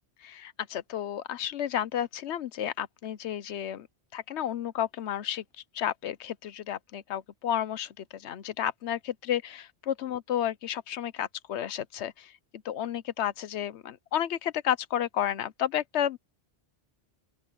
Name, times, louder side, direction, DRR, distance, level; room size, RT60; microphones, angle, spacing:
voice 1, 0.2-3.9 4.1-5.4 5.7-16.2, left 10 dB, 85° left, 1.0 m, -32 dB
open air
omnidirectional pair, 1.1 m